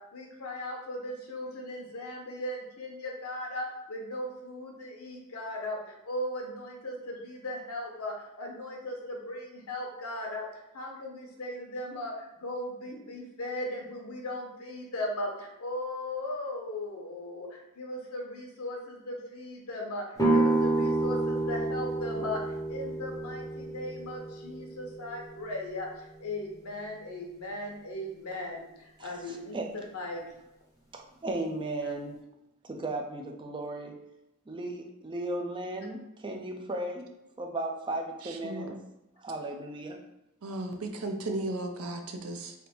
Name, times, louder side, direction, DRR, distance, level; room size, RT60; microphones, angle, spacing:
voice 1, 0.0-22.4 22.7-30.2, left 1 dB, 75° left, 0 dB, 1.0 m, -38 dB
sound 1, 20.2-25.9, right 2 dB, 15° left, 0.7 m, -29 dB
voice 2, 29.0-29.7 30.9-32.2 32.6-34.0 34.5-37.1 37.4-38.7 39.2-40.0, right 2 dB, 20° right, 2 dB, 0.4 m, -36 dB
voice 3, 38.4-38.8 40.4-42.5, right 2 dB, 70° right, 4 dB, 0.6 m, -35 dB
3.4 x 2.5 x 4.4 m, 0.90 s
head